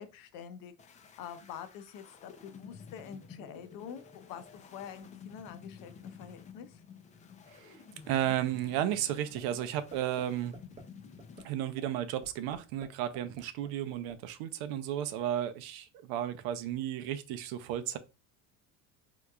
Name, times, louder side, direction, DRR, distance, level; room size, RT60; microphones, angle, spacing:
voice 1, 0.0-6.8, left 8 dB, 60° left, 0.7 m, -46 dB
sound 1, 0.8-11.5, left 6 dB, 20° left, 0.4 m, -52 dB
voice 2, 7.5-7.8 8.1-10.5 11.4-18.0, right 11 dB, 70° right, 0.6 m, -33 dB
sound 2, 9.4-9.7 9.9-10.2 10.5-10.8 11.2-11.4 11.8-11.9 12.2-12.9 13.1-14.1, right 4 dB, 20° right, 0.7 m, -48 dB
3.6 x 2.9 x 2.2 m
cardioid pair, 120°, 38 cm